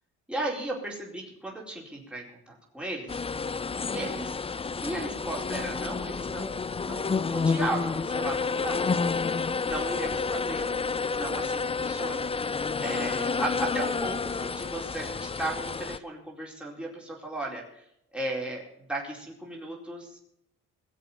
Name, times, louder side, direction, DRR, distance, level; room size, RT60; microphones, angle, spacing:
voice 1, 0.3-3.2 3.9-4.3 4.8-8.9 9.6-10.7 11.1-12.3 12.8-17.8 18.1-18.6 18.9-20.2, right 2 dB, 5° right, -3 dB, 4.6 m, -35 dB
sound 1, 3.1-16.0, left 4 dB, 20° left, 0.5 m, -30 dB
19.5 x 7.6 x 7.2 m, 0.76 s
cardioid pair, 90°, 30 cm